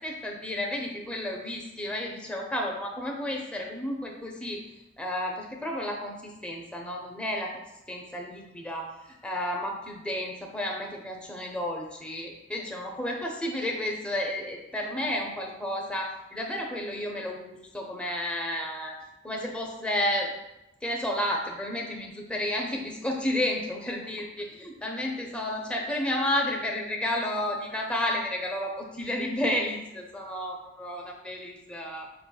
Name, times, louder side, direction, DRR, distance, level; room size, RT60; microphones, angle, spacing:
voice 1, 0.0-4.6 5.0-7.6 7.9-19.0 19.2-20.3 20.8-24.2 24.6-32.1, left 1 dB, 5° left, 0 dB, 0.6 m, -31 dB
5.4 x 4.2 x 2.3 m, 0.93 s
head